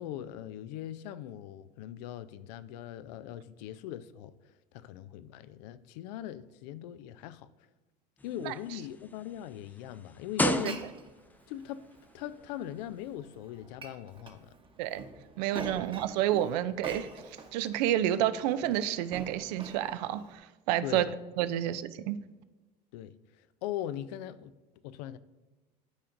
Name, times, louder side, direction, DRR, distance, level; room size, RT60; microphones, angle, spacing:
voice 1, 0.0-4.3 4.7-7.5 8.2-10.8 11.5-11.8 12.1-14.5 15.8-15.9 20.8-21.1 22.9-23.1 23.6-24.5 24.8-25.2, left 11 dB, 75° left, 0.4 m, -40 dB
sound 1, 8.2-11.3 12.2-12.3, left 2 dB, 10° left, 0.3 m, -33 dB
Glass, 10.4-20.4, right 3 dB, 25° right, 0.9 m, -47 dB
voice 2, 15.4-17.1 17.5-20.4 20.7-21.1 21.4-22.2, right 12 dB, 75° right, 0.4 m, -29 dB
12.5 x 4.4 x 2.6 m
hypercardioid pair, 80°, 21 cm